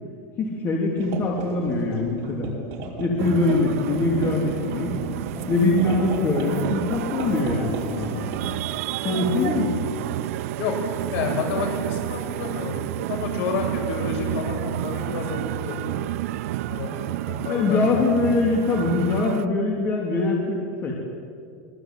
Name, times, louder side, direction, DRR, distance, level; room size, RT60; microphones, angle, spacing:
voice 1, 0.4-2.5 3.0-4.9 5.5-8.3 9.0-9.9 17.4-20.9, left 3 dB, 30° left, -1 dB, 3.3 m, -23 dB
sound 1, 1.0-11.4, right 3 dB, 45° right, 5.7 m, -35 dB
sound 2, 3.2-19.5, right 15 dB, 70° right, 0.6 m, -30 dB
voice 2, 11.1-16.1 16.7-17.8, left 5 dB, 65° left, 2 dB, 7.7 m, -30 dB
24.0 x 21.5 x 9.2 m, 2.3 s
supercardioid pair, 160°, 8 cm